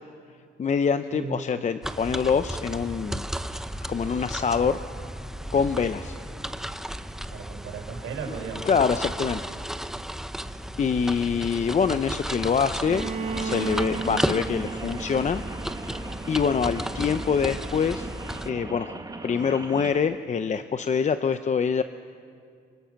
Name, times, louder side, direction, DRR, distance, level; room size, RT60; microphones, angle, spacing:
voice 1, 0.6-3.3 3.9-4.8 5.5-6.2 8.7-9.4 10.8-13.1 13.4-15.4 16.3-18.1 18.5-19.0 19.2-21.8, left 6 dB, 35° left, 10 dB, 0.7 m, -25 dB
sound 1, 1.8-18.5, equal, ahead, 0.9 m, -34 dB
voice 2, 7.3-8.7 10.3-11.0, right 5 dB, 85° right, 3 dB, 4.5 m, -37 dB
Bowed string instrument, 12.8-16.7, right 4 dB, 35° right, 1.1 m, -35 dB
Rain, 13.1-19.9, right 2 dB, 20° right, 1.9 m, -39 dB
26.0 x 25.5 x 5.9 m, 2.3 s
cardioid pair, 90°, 20 cm